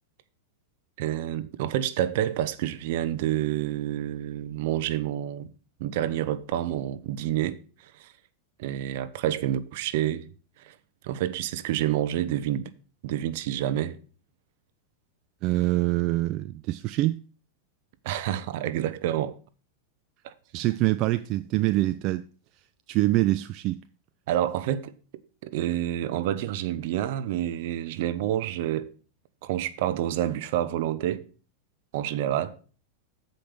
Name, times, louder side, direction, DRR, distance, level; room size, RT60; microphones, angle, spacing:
voice 1, 1.0-5.5 5.8-7.6 7.8-8.1 8.6-10.3 10.6-10.7 11.0-12.7 13.0-14.0 18.0-19.4 20.2-20.3 24.3-24.9 25.4-28.9 29.4-31.2 31.9-32.6, right 12 dB, 65° right, 0.8 m, -28 dB
voice 2, 15.4-17.2 20.5-22.2 22.9-23.8, right 17 dB, 45° right, 0.3 m, -25 dB
7.6 x 5.2 x 6.7 m
supercardioid pair, 130°, 0 cm